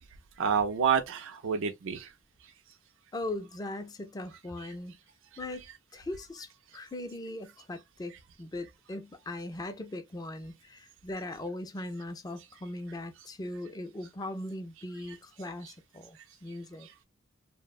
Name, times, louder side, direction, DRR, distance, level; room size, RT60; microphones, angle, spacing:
voice 1, 0.4-2.1 4.6-4.7 5.5-5.7 8.1-8.2 15.0-15.2 15.6-15.7 16.8-16.9, right 6 dB, 60° right, 0.4 m, -30 dB
voice 2, 3.1-5.0 5.4-5.6 5.9-8.1 8.4-16.9, left 1 dB, 20° left, 0.3 m, -39 dB
2.6 x 2.0 x 2.3 m
head